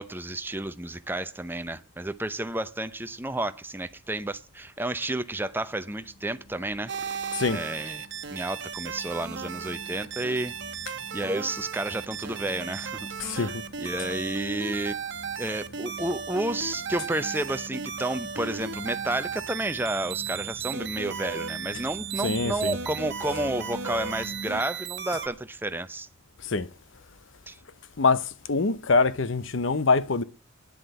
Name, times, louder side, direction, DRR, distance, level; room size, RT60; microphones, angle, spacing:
voice 1, 0.0-6.9 7.5-10.5 11.1-15.0 15.4-26.1 27.5-27.6, right 1 dB, 10° right, 0.7 m, -31 dB
sound 1, 5.9-24.6, right 1 dB, 90° left, 2.8 m, -45 dB
sound 2, 6.9-25.3, right 6 dB, 55° right, 1.3 m, -36 dB
voice 2, 13.2-13.6 22.2-22.8 23.3-23.4 26.5-26.7 28.0-28.2 28.5-30.2, left 4 dB, 60° left, 0.8 m, -24 dB
10.5 x 7.9 x 8.0 m
head